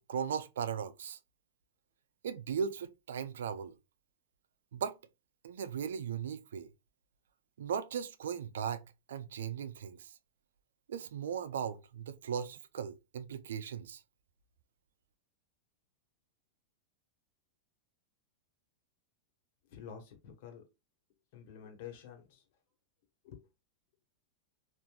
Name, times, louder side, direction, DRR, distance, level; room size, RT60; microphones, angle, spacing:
voice 1, 0.1-1.2 2.2-3.7 4.7-5.0 5.4-6.7 7.6-10.1 10.9-14.0, right 7 dB, 80° right, 0.4 m, -37 dB
voice 2, 19.7-20.6 21.3-22.4 23.2-23.5, left 8 dB, 60° left, 1.2 m, -49 dB
3.3 x 2.5 x 2.3 m
hypercardioid pair, 120°, 0 cm